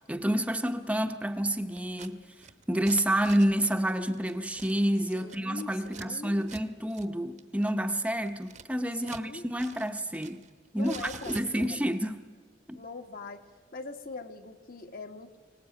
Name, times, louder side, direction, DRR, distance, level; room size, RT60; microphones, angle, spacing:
voice 1, 0.1-2.2 2.7-10.4 10.7-12.2 12.7-12.8, right 1 dB, 5° right, 6 dB, 0.8 m, -29 dB
Scissors, 1.8-2.1 2.4-6.1 6.4-6.6 6.9-7.1 7.4-9.3 9.6-10.5 10.8-11.9, right 5 dB, 40° right, 0.9 m, -47 dB
voice 2, 5.1-6.4 9.0-9.5 10.7-11.8 12.7-13.4 13.7-15.4, left 3 dB, 50° left, 6 dB, 1.4 m, -42 dB
23.5 x 19.0 x 8.8 m, 1.5 s
head